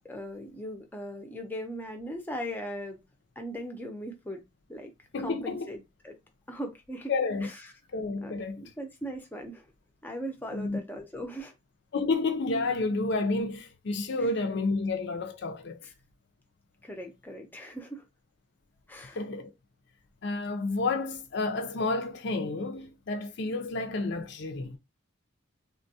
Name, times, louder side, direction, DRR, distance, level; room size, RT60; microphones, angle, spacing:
voice 1, 0.0-3.0 3.4-4.4 4.7-4.9 5.2-6.2 6.5-7.1 7.4-7.7 8.2-9.7 10.0-11.5 15.8-15.9 16.8-18.0 18.9-19.2, equal, 10° left, 0.5 m, -39 dB
voice 2, 5.1-5.7 7.1-7.5 7.9-8.6 10.5-10.8 11.9-15.8 19.2-19.5 20.2-24.8, left 3 dB, 55° left, 0.5 m, -30 dB
3.5 x 2.2 x 2.7 m
head